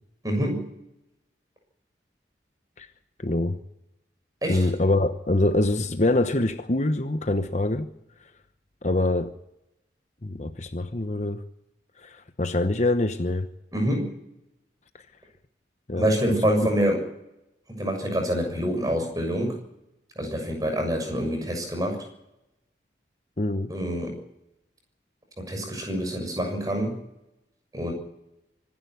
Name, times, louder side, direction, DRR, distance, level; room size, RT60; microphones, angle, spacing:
voice 1, 0.2-0.7 4.4-4.7 13.7-14.1 16.0-17.0 17.7-19.6 20.1-22.0 23.7-24.2 25.4-27.0 27.7-27.9, equal, 20° right, 3 dB, 6.8 m, -26 dB
voice 2, 3.2-3.6 4.5-7.9 8.8-9.3 10.2-11.4 12.0-13.5 15.9-16.1 23.4-23.7, left 2 dB, 40° left, 9 dB, 1.0 m, -24 dB
25.5 x 11.5 x 9.6 m, 0.87 s
head